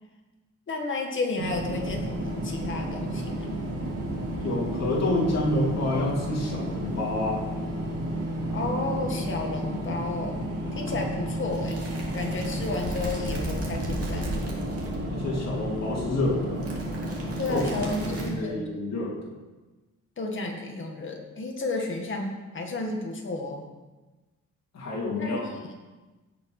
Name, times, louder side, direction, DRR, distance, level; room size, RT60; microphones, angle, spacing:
voice 1, 0.7-3.5 8.5-10.4 10.7-11.8 12.1-14.4 17.4-18.6 20.2-23.6 25.2-25.4 25.6-25.7, left 3 dB, 40° left, 1 dB, 1.9 m, -32 dB
sound 1, 1.4-18.3, right 1 dB, 50° right, 2.5 m, -31 dB
voice 2, 4.4-7.4 15.1-16.6 17.5-17.6 18.0-19.2 24.7-25.6, left 2 dB, 55° left, -5 dB, 3.3 m, -28 dB
17.0 x 6.2 x 5.0 m, 1.2 s
wide cardioid pair, 155°, 31 cm